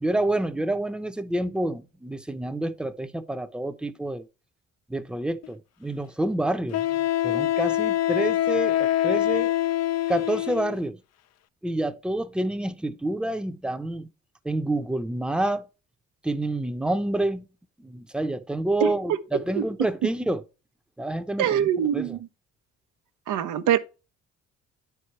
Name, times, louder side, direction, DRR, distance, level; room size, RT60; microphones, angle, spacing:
voice 1, 0.0-4.2 4.9-6.8 7.2-9.5 10.1-11.0 11.6-14.1 14.4-15.6 16.2-17.4 17.8-20.4 21.0-21.6 21.9-22.1, right 1 dB, 5° right, 0.7 m, -28 dB
Wind instrument woodwind instrument, 5.4-5.5 6.7-10.8, left 13 dB, 55° left, 0.5 m, -24 dB
voice 2, 18.8-19.2 21.4-22.3 23.3-23.8, right 10 dB, 80° right, 0.9 m, -24 dB
9.3 x 4.8 x 4.3 m
cardioid pair, 90°, 30 cm